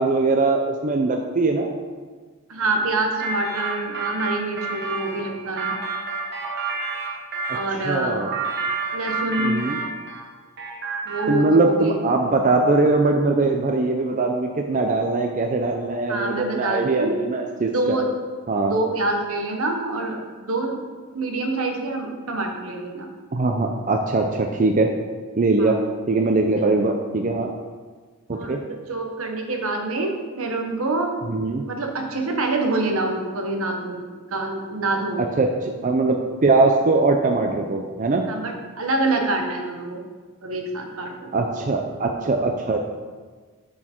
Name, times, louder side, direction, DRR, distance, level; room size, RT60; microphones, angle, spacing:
voice 1, 0.0-1.7 7.5-7.6 7.8-8.3 9.4-9.8 11.3-18.0 18.5-18.8 23.3-24.9 25.3-25.8 26.1-27.5 28.3-28.6 31.2-31.6 35.2-38.3 41.3-42.8, right 3 dB, 35° right, 3 dB, 0.5 m, -21 dB
voice 2, 2.5-5.8 7.5-8.2 8.9-9.6 11.1-12.1 16.1-18.1 18.6-20.8 21.1-23.1 25.6-25.8 26.6-26.8 28.3-31.1 31.6-35.2 38.3-40.0 40.4-41.3, right 2 dB, 80° right, 2 dB, 1.1 m, -26 dB
sound 1, 3.2-7.7 8.2-10.3 10.6-11.5, right 4 dB, 50° right, 1.0 m, -29 dB
6.2 x 6.1 x 4.4 m, 1.4 s
head